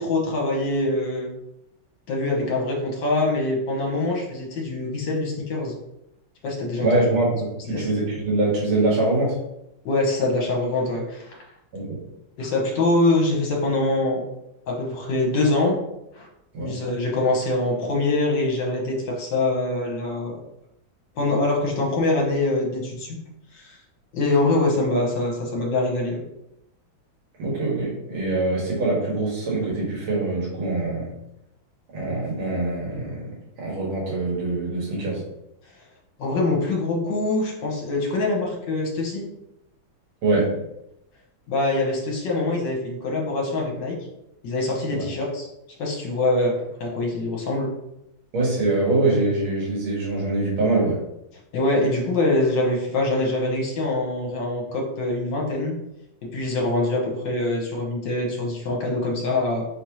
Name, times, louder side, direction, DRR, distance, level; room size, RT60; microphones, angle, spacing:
voice 1, 0.0-1.3 2.1-5.7 6.4-7.0 7.7-7.9 9.8-11.4 12.4-14.2 14.7-15.8 16.2-16.3 16.6-20.4 21.1-23.2 23.5-23.8 24.1-26.2 36.2-39.3 41.5-44.0 44.4-45.5 45.8-47.7 51.5-55.8 56.2-59.7, left 2 dB, 65° left, -2 dB, 1.7 m, -24 dB
voice 2, 6.8-7.3 7.7-9.4 11.7-12.1 16.5-16.7 27.4-31.1 31.9-33.3 33.6-35.2 40.2-40.6 44.9-45.1 48.3-51.0, right 2 dB, 80° right, -5 dB, 2.3 m, -24 dB
4.4 x 3.5 x 3.0 m, 0.84 s
omnidirectional pair, 2.2 m